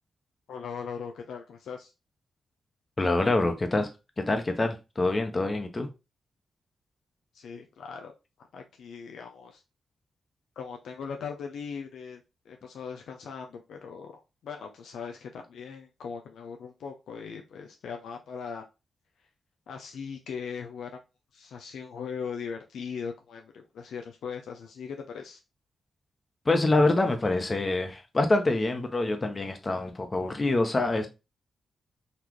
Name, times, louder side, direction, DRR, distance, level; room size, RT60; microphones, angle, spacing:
voice 1, 0.5-1.9 7.3-8.1 8.5-9.6 10.6-18.6 19.7-21.0 21.3-25.4, left 6 dB, 80° left, 0.5 m, -39 dB
voice 2, 3.0-3.9 4.2-5.9 26.4-31.1, left 2 dB, 35° left, 1.1 m, -25 dB
4.2 x 2.7 x 3.1 m
supercardioid pair, 45°, 0 cm